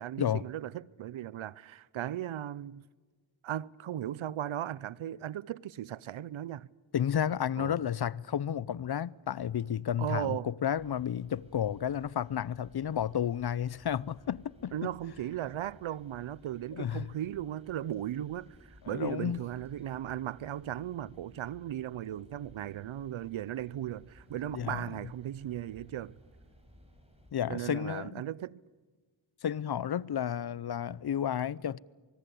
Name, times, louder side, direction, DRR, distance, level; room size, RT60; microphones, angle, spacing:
voice 1, 0.0-2.8 3.4-6.7 7.6-7.8 10.0-10.5 14.7-26.2 27.5-28.6, right 11 dB, 85° right, 0.7 m, -37 dB
voice 2, 6.9-14.9 16.7-17.1 18.9-19.4 24.5-24.8 27.3-28.2 29.4-31.8, left 9 dB, 55° left, 0.7 m, -32 dB
sound 1, 10.7-27.3, equal, 15° right, 7.7 m, -59 dB
24.5 x 22.5 x 8.4 m
cardioid pair, 65°, 47 cm